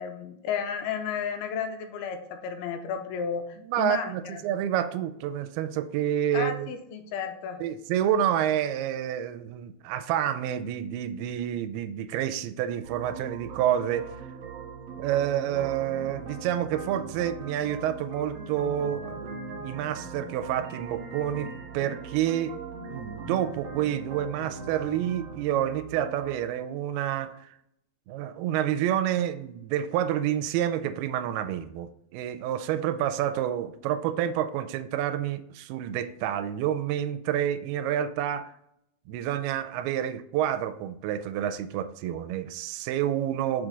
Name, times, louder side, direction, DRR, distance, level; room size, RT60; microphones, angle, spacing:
voice 1, 0.0-4.4 6.3-7.6, left 7 dB, 80° left, 6 dB, 2.5 m, -33 dB
voice 2, 3.7-6.7 7.6-14.1 15.0-19.4 19.6-22.6 22.9-27.5 28.1-38.5 39.1-43.7, right 10 dB, 80° right, 10 dB, 2.4 m, -28 dB
sound 1, 12.8-26.4, right 4 dB, 55° right, 1.9 m, -40 dB
6.1 x 4.9 x 3.9 m, 0.76 s
omnidirectional pair, 4.7 m